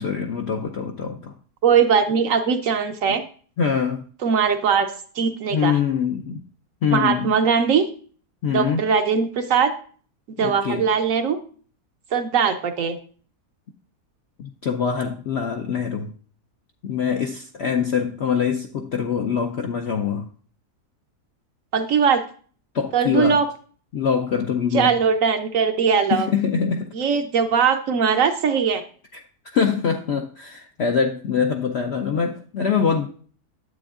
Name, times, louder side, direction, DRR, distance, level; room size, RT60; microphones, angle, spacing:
voice 1, 0.0-1.3 3.0-3.2 3.6-4.0 5.5-6.4 6.8-7.3 8.4-8.8 10.4-10.9 14.4-16.1 16.8-20.3 22.7-23.4 23.9-25.0 26.1-26.9 29.1-29.2 29.5-33.1, left 6 dB, 65° left, 3 dB, 0.6 m, -24 dB
voice 2, 1.6-3.2 4.2-4.9 5.2-5.8 6.9-7.8 8.5-9.7 10.4-11.4 12.1-13.0 21.7-22.2 22.9-23.4 24.7-26.3 26.9-28.8, right 6 dB, 65° right, 8 dB, 0.9 m, -20 dB
9.7 x 7.6 x 2.4 m, 0.44 s
omnidirectional pair, 1.7 m